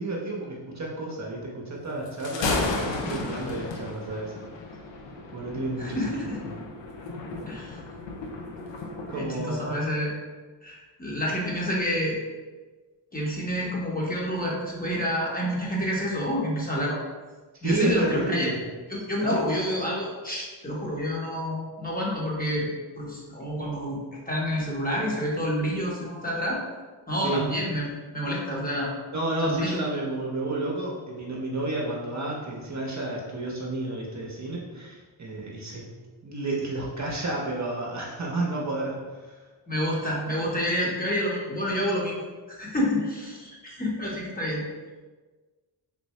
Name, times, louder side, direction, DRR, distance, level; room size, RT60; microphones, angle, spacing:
voice 1, 0.0-4.4 5.3-6.0 6.3-6.4 9.1-9.7 17.6-18.6 19.2-19.4 27.2-27.4 29.1-35.8 36.2-39.4, right 2 dB, 40° right, -3 dB, 0.8 m, -31 dB
Thunder, 2.1-9.3, left 3 dB, 75° left, 0.6 m, -34 dB
voice 2, 5.8-6.4 7.5-7.8 9.1-10.1 10.6-12.2 13.1-17.0 17.6-18.5 18.9-22.7 23.0-24.0 24.3-26.6 27.1-28.9 29.4-29.8 39.7-42.2 42.5-44.6, equal, 20° left, -4 dB, 1.1 m, -28 dB
3.4 x 2.6 x 3.1 m, 1.3 s
cardioid pair, 55°, 45 cm